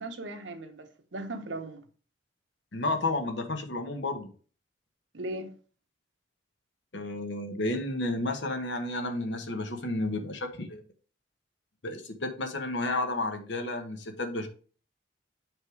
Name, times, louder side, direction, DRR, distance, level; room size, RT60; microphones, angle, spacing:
voice 1, 0.0-1.8 5.1-5.5, right 2 dB, 80° right, 1.0 m, -38 dB
voice 2, 2.7-4.3 6.9-10.8 11.8-14.5, left 2 dB, 70° left, 1.1 m, -32 dB
7.4 x 3.6 x 4.7 m
head